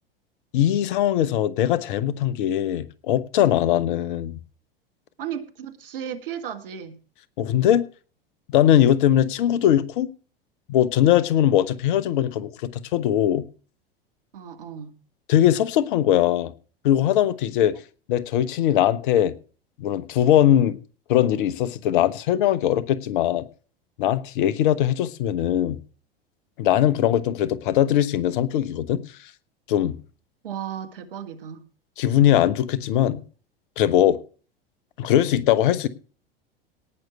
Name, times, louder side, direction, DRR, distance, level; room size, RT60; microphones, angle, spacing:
voice 1, 0.5-4.4 7.4-7.9 8.5-10.1 10.7-13.4 15.3-16.5 16.8-17.8 18.1-19.3 19.8-20.8 21.1-23.5 24.0-25.8 26.6-29.1 29.7-30.0 32.0-33.2 33.8-34.2 35.0-35.9, left 11 dB, 60° left, 1.1 m, -20 dB
voice 2, 5.2-7.0 14.3-14.9 30.4-31.6, right 9 dB, 70° right, 1.7 m, -34 dB
18.5 x 6.5 x 4.5 m
figure-of-eight pair, 85°, 29 cm